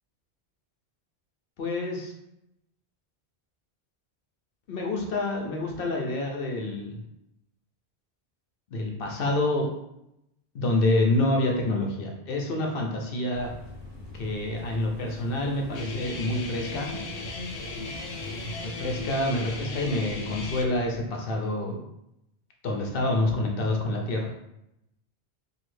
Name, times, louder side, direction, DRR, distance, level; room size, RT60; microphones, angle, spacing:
voice 1, 1.6-2.1 4.7-7.0 8.7-9.7 10.5-13.5 14.1-17.0 18.6-21.8 22.6-24.3, left 2 dB, 65° left, 1 dB, 0.9 m, -27 dB
sound 1, 13.3-21.0, left 1 dB, 45° right, 0.9 m, -44 dB
Guitar, 15.7-20.6, left 3 dB, 85° left, 0.9 m, -36 dB
3.1 x 2.5 x 3.1 m, 0.82 s
omnidirectional pair, 1.1 m